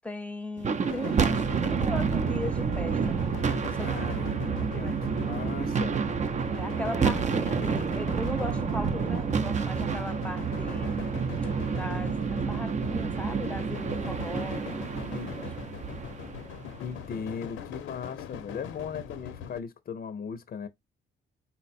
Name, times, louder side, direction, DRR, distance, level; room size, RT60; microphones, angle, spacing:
voice 1, 0.0-3.2 3.6-3.9 4.7-5.0 6.5-10.9 11.7-14.9, left 2 dB, 5° left, 0.7 m, -38 dB
sound 1, 0.6-17.0, right 6 dB, 35° right, 0.6 m, -29 dB
Wind instrument woodwind instrument, 0.7-5.6, right 2 dB, 80° right, 1.1 m, -53 dB
sound 2, 0.8-19.6, left 8 dB, 85° left, 0.7 m, -42 dB
voice 2, 3.8-6.0 14.0-14.1 15.1-15.3 16.8-20.7, left 6 dB, 50° left, 0.6 m, -38 dB
4.1 x 2.2 x 4.2 m
cardioid pair, 90°, 20 cm